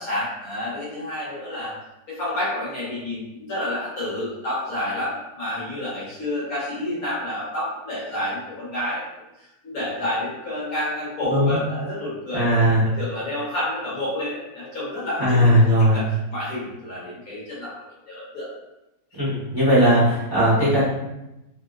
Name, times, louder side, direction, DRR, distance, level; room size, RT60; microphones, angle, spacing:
voice 1, 0.0-1.7 2.1-9.0 9.4-12.5 12.8-18.5, left 1 dB, 60° left, -8 dB, 1.4 m, -29 dB
voice 2, 11.3-11.6 12.3-12.8 15.2-16.0 19.2-20.8, equal, 15° right, -11 dB, 1.1 m, -18 dB
3.1 x 2.6 x 2.3 m, 0.93 s
omnidirectional pair, 1.8 m